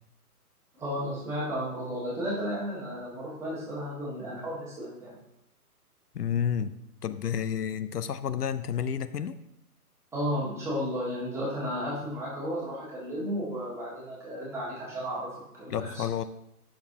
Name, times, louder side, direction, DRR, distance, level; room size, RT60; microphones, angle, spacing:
voice 1, 0.7-5.2 10.1-16.0, equal, 5° right, -9 dB, 1.9 m, -33 dB
voice 2, 6.1-6.7 7.0-9.4 15.7-16.2, left 8 dB, 80° left, 13 dB, 0.6 m, -30 dB
8.0 x 6.5 x 2.8 m, 0.82 s
hypercardioid pair, 140°, 46 cm